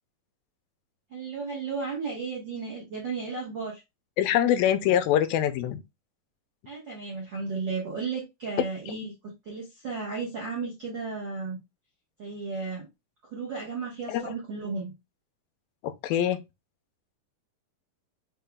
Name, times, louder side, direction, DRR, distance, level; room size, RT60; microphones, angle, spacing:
voice 1, 1.1-3.8 6.6-11.6 12.2-12.9 13.2-14.9, right 4 dB, 65° right, 1.1 m, -34 dB
voice 2, 4.2-5.8 14.1-14.2 15.8-16.4, left 10 dB, 90° left, 2.4 m, -24 dB
6.6 x 2.3 x 3.4 m
omnidirectional pair, 4.0 m